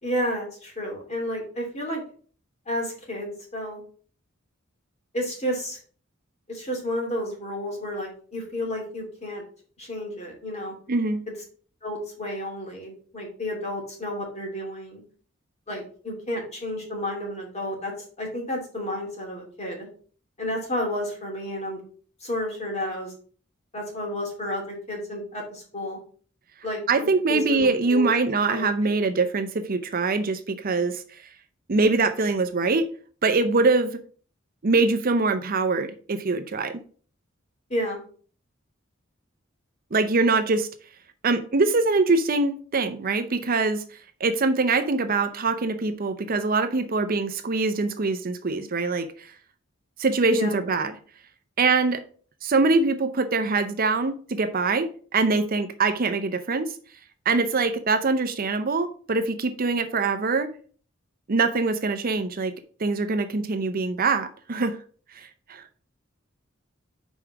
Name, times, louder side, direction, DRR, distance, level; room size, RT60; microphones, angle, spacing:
voice 1, 0.0-2.0 2.7-3.8 5.1-5.8 6.5-9.4 9.8-10.7 11.8-15.0 15.7-17.9 18.2-19.9 20.4-21.8 22.2-23.1 23.7-26.0 26.6-26.8 27.3-28.0 28.5-28.7 37.7-38.0 50.3-50.6, left 1 dB, 35° left, 2.8 m, -31 dB
voice 2, 10.9-11.2 26.9-31.2 31.7-32.9 33.2-34.0 34.6-36.8 39.9-40.7 41.2-43.8 44.2-49.3 50.0-50.9 51.6-52.0 52.4-56.7 57.3-60.5 61.3-62.5 62.8-64.8 65.2-65.6, right 3 dB, 45° right, 0.6 m, -23 dB
5.4 x 4.6 x 6.0 m
head